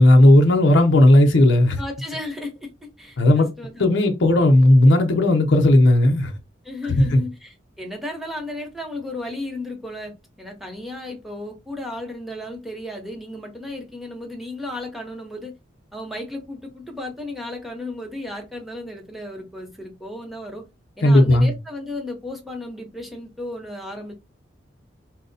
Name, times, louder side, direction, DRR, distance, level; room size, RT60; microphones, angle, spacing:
voice 1, 0.0-1.8 3.2-3.5 3.8-6.3 6.8-7.2 21.0-21.5, left 1 dB, 70° left, 0.6 m, -14 dB
voice 2, 1.8-3.8 6.6-15.5 15.9-20.6 21.0-24.1, left 1 dB, ahead, 0.7 m, -34 dB
4.2 x 2.0 x 2.6 m
head